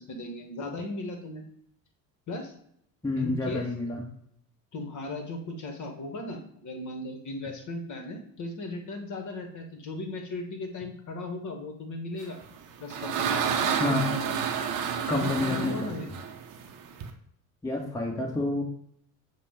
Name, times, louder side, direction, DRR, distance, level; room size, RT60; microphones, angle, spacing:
voice 1, 0.0-1.4 2.3-2.5 3.2-3.7 4.7-12.4 12.8-16.1, left 2 dB, 40° left, 4 dB, 1.1 m, -37 dB
voice 2, 3.0-4.0 13.8-14.1 15.1-15.8 17.6-18.6, left 2 dB, 5° left, 0 dB, 0.8 m, -28 dB
sound 1, 12.4-17.1, right 8 dB, 40° right, 0.7 m, -30 dB
6.7 x 2.2 x 3.4 m, 0.70 s
hypercardioid pair, 75°, 48 cm